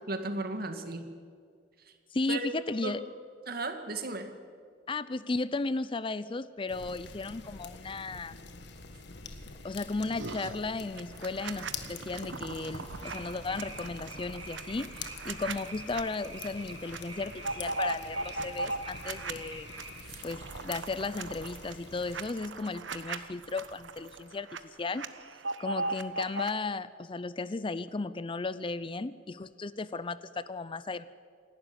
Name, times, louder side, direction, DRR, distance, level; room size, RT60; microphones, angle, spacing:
voice 1, 0.1-1.0 2.3-2.5 2.8-3.0 3.5-4.3 20.1-20.2, right 2 dB, 55° right, 7 dB, 2.0 m, -35 dB
voice 2, 2.1-3.0 4.9-8.3 9.6-19.7 20.2-25.1 25.6-31.1, left 3 dB, 30° left, 16 dB, 0.5 m, -35 dB
sound 1, 6.7-22.3, left 4 dB, 65° left, 1.6 m, -46 dB
sound 2, 10.2-10.6 11.0-16.0 16.4-16.5 16.8-19.3 19.7-24.6 24.8-26.5, right 3 dB, 85° right, 1.2 m, -38 dB
sound 3, 13.0-20.0, right 3 dB, 25° right, 4.0 m, -46 dB
27.5 x 12.0 x 9.9 m, 2.2 s
head